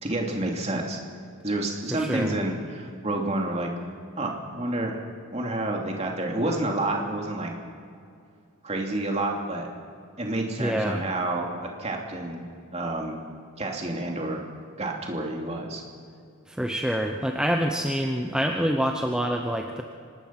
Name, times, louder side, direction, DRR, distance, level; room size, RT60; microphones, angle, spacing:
voice 1, 0.0-1.0 1.4-3.7 4.2-5.0 5.3-7.5 8.6-9.7 10.2-11.5 11.8-12.4 12.7-13.2 13.6-14.5 14.8-15.8, right 2 dB, 30° right, 0 dB, 2.8 m, -29 dB
voice 2, 1.9-2.4 10.6-11.0 16.5-19.8, equal, 5° right, 2 dB, 0.8 m, -26 dB
25.0 x 20.0 x 5.9 m, 2.4 s
head